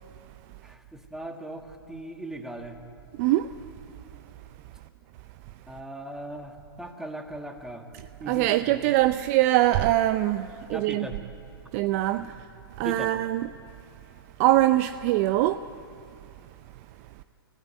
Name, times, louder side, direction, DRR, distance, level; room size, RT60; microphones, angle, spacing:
voice 1, 0.6-2.8 5.7-7.9 8.2-8.8 10.7-11.2 12.2-12.3 12.8-13.1, right 1 dB, 5° right, 1.9 m, -39 dB
voice 2, 3.2-3.5 8.3-11.1 11.7-12.5 12.8-13.5 14.4-15.7, right 15 dB, 40° right, 0.5 m, -23 dB
26.0 x 16.5 x 9.1 m
hypercardioid pair, 125°, 13 cm